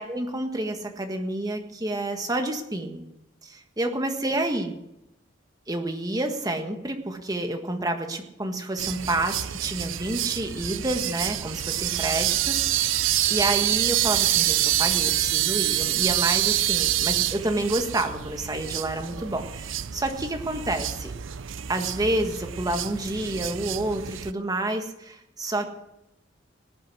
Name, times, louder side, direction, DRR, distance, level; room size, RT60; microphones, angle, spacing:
voice 1, 0.0-3.1 3.4-4.8 5.7-21.1 21.7-25.7, right 1 dB, 20° right, 4 dB, 1.6 m, -29 dB
sound 1, 8.8-24.3, right 13 dB, 85° right, 0.6 m, -27 dB
18.0 x 9.1 x 6.1 m, 0.87 s
head